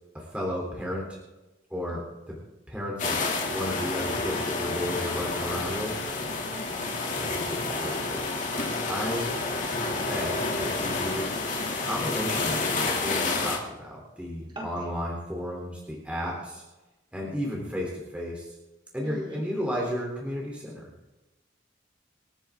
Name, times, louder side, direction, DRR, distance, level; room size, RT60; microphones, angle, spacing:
voice 1, 0.1-1.1 1.7-2.4 2.7-3.2 3.5-5.9 7.2-9.3 9.9-11.3 11.8-16.6 17.1-18.5 18.9-20.8, equal, 5° right, -4 dB, 3.7 m, -33 dB
sound 1, 3.0-13.6, left 3 dB, 45° left, 3.0 m, -29 dB
voice 2, 6.5-6.9 14.5-14.9 16.3-16.4 17.2-17.5 19.0-19.4, right 1 dB, 25° right, -3 dB, 4.3 m, -42 dB
28.5 x 10.0 x 3.9 m, 1.1 s
head